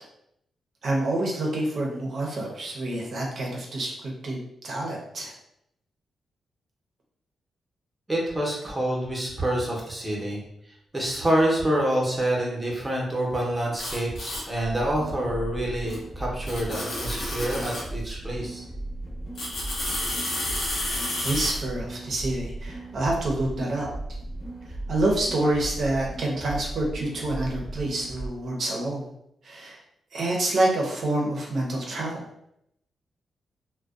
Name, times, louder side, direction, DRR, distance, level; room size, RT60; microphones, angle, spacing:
voice 1, 0.8-5.3 20.9-23.9 24.9-29.1 29.4-29.8 30.1-32.3, right 2 dB, 60° right, -1 dB, 0.7 m, -27 dB
voice 2, 8.1-10.4 10.9-18.6, right 1 dB, 20° right, -2 dB, 0.8 m, -27 dB
sound 1, 13.8-14.4 15.9-16.0 16.5-17.9 19.3-21.5, left 1 dB, 80° left, 0.8 m, -31 dB
sound 2, 14.6-28.3, right 2 dB, 15° left, 0.8 m, -36 dB
2.5 x 2.2 x 2.3 m, 0.77 s
cardioid pair, 95°, 0 cm